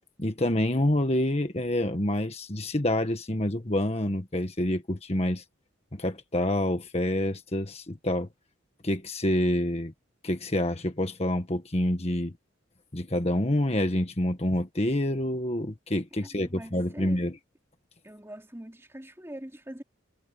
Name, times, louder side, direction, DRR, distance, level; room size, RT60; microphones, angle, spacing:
voice 1, 0.2-5.4 5.9-8.3 8.8-9.9 10.2-12.3 12.9-17.3, left 1 dB, 30° left, 1.6 m, -27 dB
voice 2, 16.2-17.3 18.0-19.8, right 1 dB, 15° right, 2.7 m, -43 dB
head